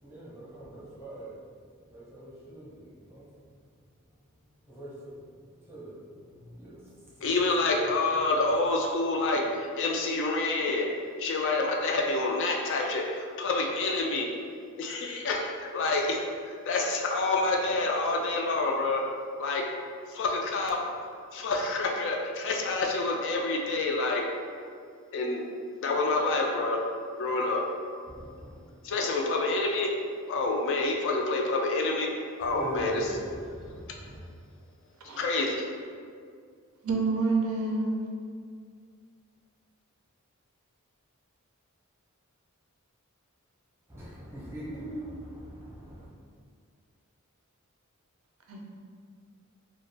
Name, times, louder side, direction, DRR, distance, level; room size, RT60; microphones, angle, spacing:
voice 1, 0.0-1.3 1.9-3.3 4.7-5.2 5.6-7.1 28.1-28.6 32.4-34.3 43.9-46.1, right 1 dB, 10° right, -9 dB, 0.7 m, -41 dB
voice 2, 7.2-9.4 9.8-10.9 11.2-14.3 14.8-16.2 16.4-19.0 19.4-19.6 20.1-20.8 21.3-24.2 25.1-25.4 25.8-26.8 27.2-27.6 28.8-29.9 30.3-32.1 32.4-33.1 35.2-35.6, left 3 dB, 55° left, 1 dB, 0.3 m, -27 dB
voice 3, 36.8-38.0 48.5-48.7, right 3 dB, 65° right, -1 dB, 0.4 m, -28 dB
2.3 x 2.1 x 3.2 m, 2.1 s
head